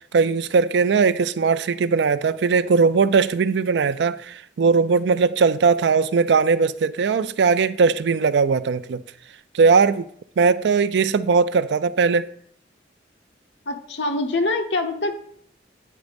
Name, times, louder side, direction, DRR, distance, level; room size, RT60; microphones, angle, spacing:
voice 1, 0.1-9.0 9.5-10.1 10.4-12.3, right 5 dB, 75° right, 0.4 m, -19 dB
voice 2, 13.7-15.2, left 2 dB, 85° left, 1.0 m, -24 dB
9.3 x 4.1 x 5.1 m
head